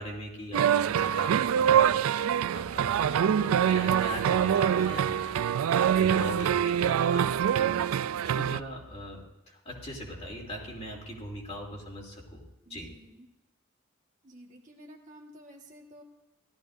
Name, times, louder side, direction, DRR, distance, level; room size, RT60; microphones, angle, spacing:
voice 1, 0.0-5.4 5.8-9.2 9.5-12.4 12.7-12.9, equal, 30° left, -2 dB, 3.0 m, -41 dB
sound 1, 0.5-8.6, right 9 dB, 75° right, 0.3 m, -25 dB
voice 2, 12.6-13.3 14.2-16.0, equal, 35° right, 0 dB, 1.5 m, -52 dB
17.0 x 13.5 x 2.6 m, 0.98 s
head